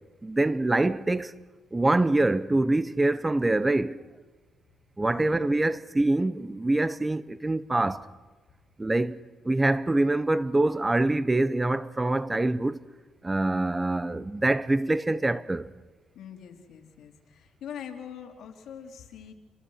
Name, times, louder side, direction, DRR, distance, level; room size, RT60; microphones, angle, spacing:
voice 1, 0.2-1.3 1.7-4.0 5.0-8.1 8.8-12.8 13.2-15.7, right 2 dB, 15° right, 0.9 m, -25 dB
voice 2, 5.1-5.7 16.2-19.3, left 8 dB, 75° left, 3.6 m, -43 dB
29.0 x 24.5 x 6.6 m
cardioid pair, 90°, 0 cm